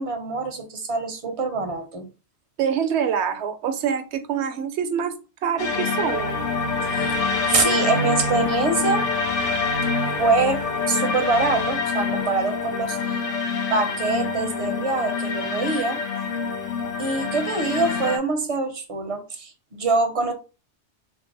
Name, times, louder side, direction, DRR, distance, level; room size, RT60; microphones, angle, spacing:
voice 1, 0.0-2.1 7.0-7.2 7.5-9.1 10.2-10.6 10.9-13.2 13.7-16.0 17.0-20.3, right 3 dB, 40° right, 0.5 m, -24 dB
voice 2, 2.6-6.3, right 7 dB, 75° right, 0.8 m, -25 dB
sound 1, 5.6-18.2, left 4 dB, 90° left, 1.0 m, -26 dB
3.3 x 2.1 x 3.8 m
omnidirectional pair, 1.2 m